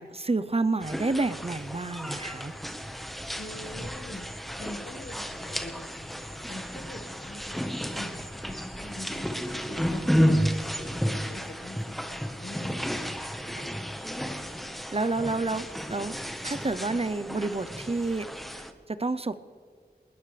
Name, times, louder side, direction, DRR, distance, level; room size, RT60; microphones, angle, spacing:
voice 1, 0.0-2.5 14.9-16.1 16.4-18.3 18.9-19.4, right 3 dB, 35° right, 13 dB, 0.7 m, -29 dB
sound 1, 0.8-18.7, equal, ahead, 1.2 m, -32 dB
voice 2, 3.4-9.3 9.7-11.8 12.1-13.3, left 1 dB, 70° left, 6 dB, 1.6 m, -44 dB
20.5 x 20.0 x 3.4 m, 2.1 s
wide cardioid pair, 60°, 17 cm